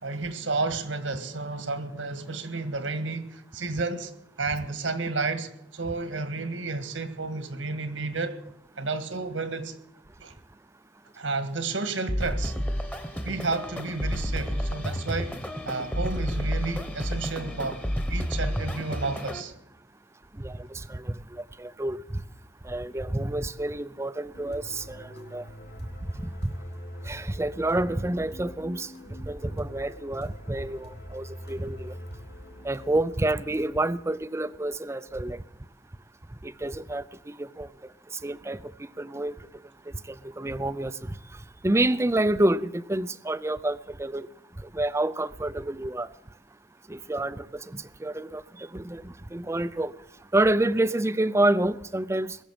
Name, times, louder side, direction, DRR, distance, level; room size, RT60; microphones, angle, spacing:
voice 1, 0.0-4.1 4.4-8.4 8.8-9.8 10.2-10.3 11.2-12.6 13.2-15.4 15.7-17.8 18.1-19.5, right 3 dB, 80° right, 1.8 m, -31 dB
sound 1, 12.1-19.4, equal, 10° left, 1.2 m, -30 dB
voice 2, 20.4-22.0 22.6-25.5 26.1-26.5 27.1-32.0 32.6-35.4 36.4-37.7 38.2-39.3 40.1-41.2 41.6-44.3 44.7-46.1 46.9-49.9 50.3-52.4, right 1 dB, 15° right, 0.5 m, -28 dB
sound 2, 24.3-32.9, equal, 55° left, 3.6 m, -43 dB
21.0 x 7.3 x 9.0 m
head